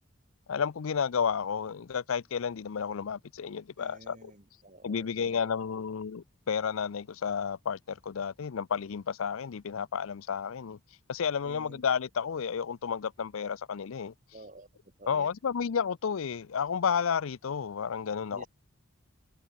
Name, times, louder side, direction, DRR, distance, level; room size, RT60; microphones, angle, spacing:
voice 1, 0.5-4.3 4.8-10.8 11.1-14.1 15.1-18.4, left 6 dB, 70° left, 0.5 m, -31 dB
voice 2, 3.8-5.6 11.4-11.8 14.3-14.7 15.0-15.3 18.3-18.5, right 1 dB, 35° right, 4.0 m, -51 dB
head